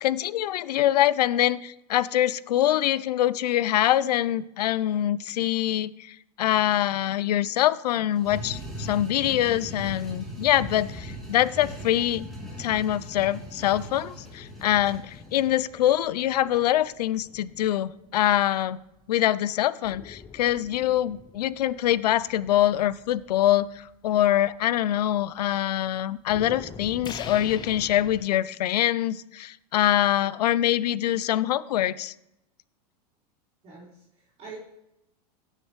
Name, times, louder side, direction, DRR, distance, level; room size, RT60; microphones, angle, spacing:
voice 1, 0.0-12.3 12.6-18.8 19.1-32.1, left 12 dB, 85° left, 19 dB, 0.5 m, -24 dB
sound 1, 8.1-15.5, equal, ahead, 3.2 m, -39 dB
sound 2, 12.2-19.0 19.8-25.7 26.0-28.3, left 5 dB, 20° left, 0.8 m, -46 dB
voice 2, 33.6-34.6, right 4 dB, 30° right, -8 dB, 4.1 m, -45 dB
17.0 x 6.5 x 3.2 m, 0.86 s
hypercardioid pair, 115°, 20 cm